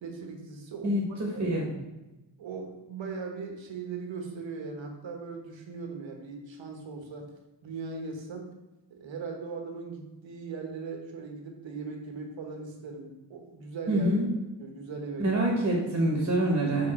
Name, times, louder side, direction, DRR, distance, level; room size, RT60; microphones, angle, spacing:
voice 1, 0.0-1.6 2.4-7.3 7.6-8.6 8.9-14.2 14.6-15.5, right 4 dB, 85° right, 3 dB, 1.3 m, -39 dB
voice 2, 0.8-1.7 13.9-14.3 15.2-16.9, right 1 dB, 30° right, -1 dB, 1.2 m, -26 dB
5.7 x 4.9 x 4.3 m, 1.0 s
wide cardioid pair, 170°, 44 cm